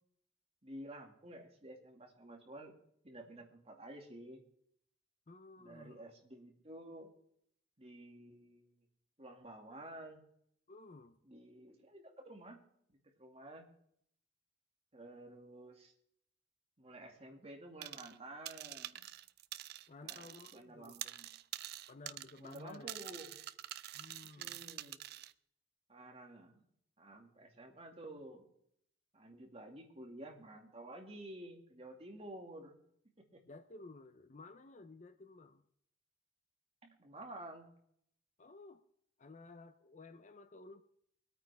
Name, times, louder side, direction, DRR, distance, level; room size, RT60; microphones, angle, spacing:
voice 1, 0.6-2.7 3.0-4.4 5.6-7.1 7.8-8.9 9.2-10.2 11.2-12.6 13.0-13.7 14.9-15.9 16.8-19.1 20.0-21.3 22.4-23.4 24.4-25.0 25.9-26.6 27.0-28.4 29.1-32.8 33.3-33.4 36.8-37.7, right 1 dB, 30° right, 1 dB, 2.1 m, -51 dB
voice 2, 5.3-6.0 10.7-11.2 19.9-21.0 21.9-22.9 23.9-24.6 33.5-35.6 38.4-38.8 39.2-40.8, left 3 dB, 40° left, 10 dB, 0.6 m, -54 dB
sound 1, 17.8-18.2 18.5-20.6 20.8-25.3, right 13 dB, 55° right, 0.4 m, -46 dB
22.5 x 9.0 x 3.5 m, 0.70 s
head